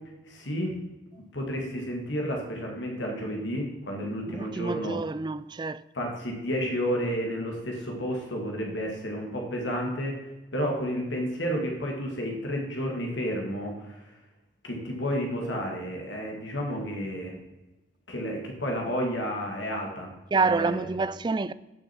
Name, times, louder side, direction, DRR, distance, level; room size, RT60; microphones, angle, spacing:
voice 1, 0.3-0.8 1.3-5.0 5.9-14.1 14.6-17.3 18.1-20.1 20.4-21.0, equal, 75° left, 2.4 m, -31 dB
voice 2, 4.3-5.8 20.3-21.5, right 4 dB, 25° right, 0.3 m, -27 dB
16.0 x 6.7 x 4.6 m
head